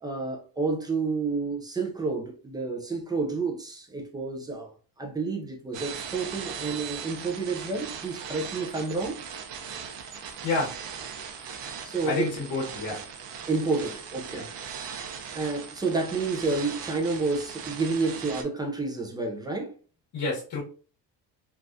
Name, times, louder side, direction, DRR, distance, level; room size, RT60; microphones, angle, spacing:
voice 1, 0.0-4.7 5.0-9.2 11.8-12.3 13.5-14.5 15.3-19.7, right 3 dB, 10° right, 0.3 m, -30 dB
sound 1, 5.7-18.4, right 7 dB, 75° right, 0.7 m, -39 dB
voice 2, 10.1-10.7 12.0-13.0 14.3-14.4 20.1-20.6, left 3 dB, 60° left, 1.5 m, -29 dB
3.3 x 2.4 x 2.5 m
cardioid pair, 155°, 42 cm